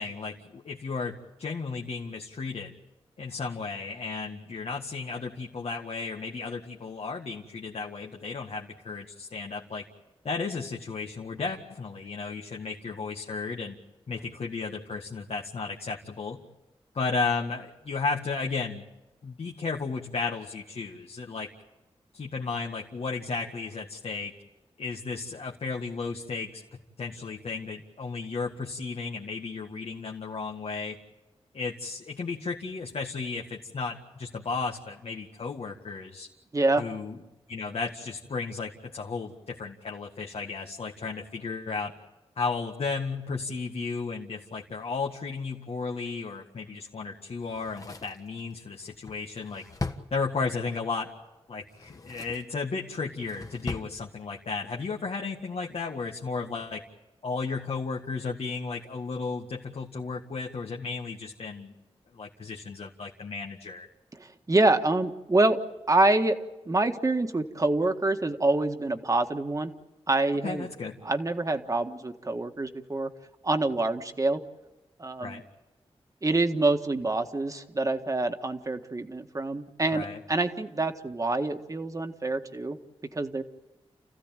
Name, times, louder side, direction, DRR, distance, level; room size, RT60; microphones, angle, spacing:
voice 1, 0.0-2.7 3.2-9.8 10.2-13.8 14.1-16.4 16.9-18.8 19.2-21.5 22.1-24.3 24.8-31.0 31.5-36.3 36.8-37.2 37.5-41.9 42.4-49.6 50.1-51.1 51.5-56.8 57.2-61.7 62.1-63.9 70.4-71.0 75.2-75.4 79.9-80.2, left 4 dB, 70° left, 0 dB, 1.8 m, -34 dB
voice 2, 36.5-36.8 64.2-65.6 65.9-66.4 66.7-69.7 70.1-70.7 71.0-73.1 73.4-74.4 75.0-75.4 76.2-82.8 83.1-83.4, right 2 dB, 30° right, 6 dB, 1.7 m, -26 dB
Drawer open or close, 47.4-50.7 51.6-52.5 52.9-53.9 54.2-54.3, left 3 dB, 30° left, 1.5 m, -39 dB
29.5 x 15.5 x 9.1 m, 1.0 s
wide cardioid pair, 80°, 11 cm